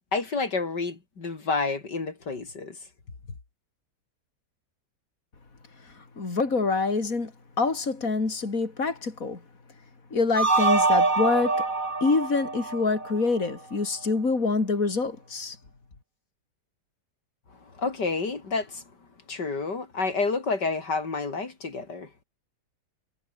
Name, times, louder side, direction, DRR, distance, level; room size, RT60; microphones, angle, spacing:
voice 1, 0.1-2.8 17.8-18.8 19.3-22.1, left 4 dB, 75° left, 3.9 m, -29 dB
voice 2, 6.0-7.3 7.6-9.4 10.1-11.6 12.0-15.6, left 4 dB, 50° left, 4.1 m, -26 dB
sound 1, 10.4-13.5, right 3 dB, 50° right, 4.1 m, -24 dB
omnidirectional pair, 1.8 m